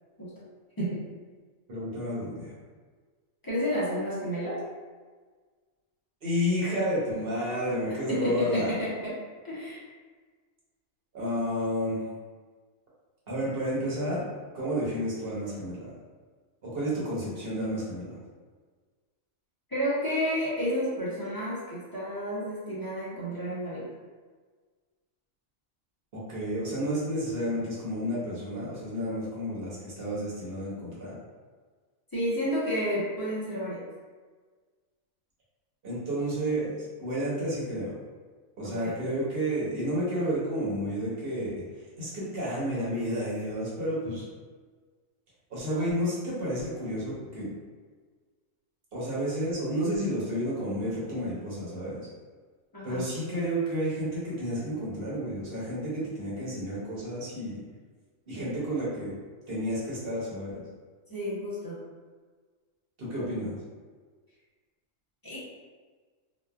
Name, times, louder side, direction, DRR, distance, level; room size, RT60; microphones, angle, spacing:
voice 1, 1.7-2.5 6.2-8.7 11.1-12.0 13.3-14.2 14.5-15.9 16.6-18.2 26.1-31.2 35.8-38.0 38.6-41.5 42.0-44.2 45.5-47.5 48.9-52.1 52.8-57.6 58.3-59.1 59.5-60.6 63.0-63.5, equal, 50° right, -7 dB, 1.0 m, -31 dB
voice 2, 3.4-4.6 8.1-9.1 9.4-9.8 19.7-23.9 32.1-33.8 38.6-39.0 52.7-53.0 58.3-58.5 61.1-61.8 65.2-65.4, equal, 25° left, -9 dB, 0.5 m, -31 dB
2.9 x 2.2 x 2.3 m, 1.5 s
omnidirectional pair, 1.4 m